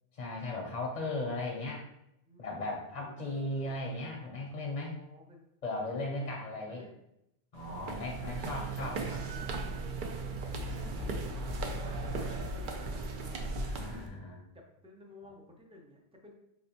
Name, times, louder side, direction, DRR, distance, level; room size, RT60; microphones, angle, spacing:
voice 1, 0.1-1.8 2.4-5.0 5.6-6.8 7.5-9.2 10.6-11.1 13.6-14.4, left 2 dB, 50° left, -1 dB, 0.6 m, -37 dB
voice 2, 2.3-3.8 4.7-5.5 5.9-7.0 8.8-9.6 10.7-13.5 14.5-16.3, equal, 10° right, 0 dB, 0.3 m, -54 dB
sound 1, 7.5-14.1, right 3 dB, 60° right, 0.6 m, -37 dB
sound 2, 10.4-12.8, left 7 dB, 40° right, 1.6 m, -42 dB
4.3 x 2.9 x 2.8 m, 0.83 s
omnidirectional pair, 1.1 m